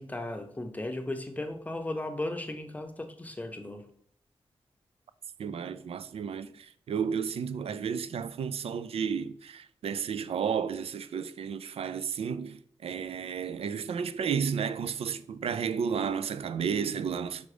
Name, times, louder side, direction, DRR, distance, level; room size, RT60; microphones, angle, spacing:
voice 1, 0.0-3.9, left 1 dB, 15° left, 0.6 m, -36 dB
voice 2, 5.4-17.5, right 7 dB, 75° right, 0.4 m, -32 dB
5.1 x 4.9 x 4.9 m
wide cardioid pair, 145°, 10 cm